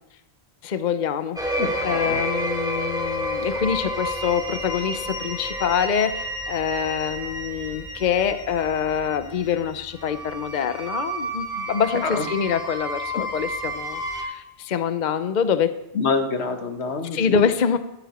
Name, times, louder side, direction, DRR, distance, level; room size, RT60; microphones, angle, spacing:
voice 1, 0.6-1.4 1.8-15.7 17.1-17.8, left 7 dB, 50° left, 11 dB, 0.8 m, -25 dB
sound 1, 1.4-14.2, equal, 5° right, 2.4 m, -30 dB
voice 2, 1.6-2.2 12.0-12.3 15.9-17.4, left 4 dB, 90° left, 6 dB, 1.5 m, -26 dB
13.5 x 12.5 x 4.3 m, 0.88 s
omnidirectional pair, 1.1 m